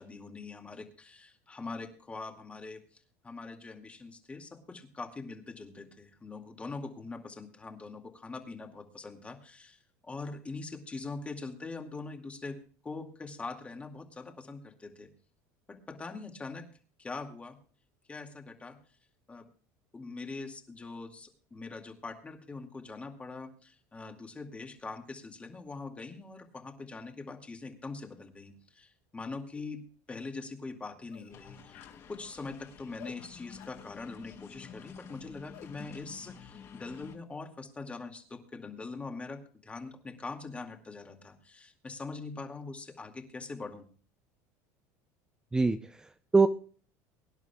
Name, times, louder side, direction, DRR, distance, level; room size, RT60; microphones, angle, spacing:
voice 1, 0.0-12.6 12.8-15.1 15.7-16.7 17.0-17.6 18.1-18.8 19.3-19.5 19.9-29.8 30.1-43.9, left 3 dB, 15° left, 4 dB, 2.2 m, -43 dB
sound 1, 29.5-29.7 30.1-30.3 31.1-31.4 31.7-32.0 33.0-33.2 33.6-33.8 35.5-35.7, left 11 dB, 80° left, 2.2 m, -52 dB
sound 2, 31.3-37.2, left 7 dB, 40° left, 2.9 m, -50 dB
voice 2, 45.5-46.5, right 4 dB, 10° right, 9 dB, 0.6 m, -25 dB
23.5 x 11.0 x 2.3 m, 0.42 s
supercardioid pair, 125°, 8 cm